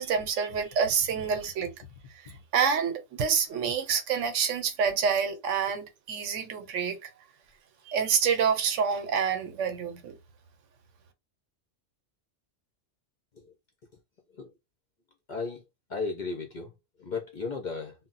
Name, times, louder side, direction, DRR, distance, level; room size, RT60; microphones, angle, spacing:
voice 1, 0.0-1.7 2.2-7.1 7.9-10.2, right 6 dB, 80° right, 1.0 m, -27 dB
voice 2, 15.3-15.6 15.9-16.7 17.0-17.9, left 4 dB, 55° left, 0.5 m, -34 dB
2.2 x 2.0 x 3.8 m
omnidirectional pair, 1.3 m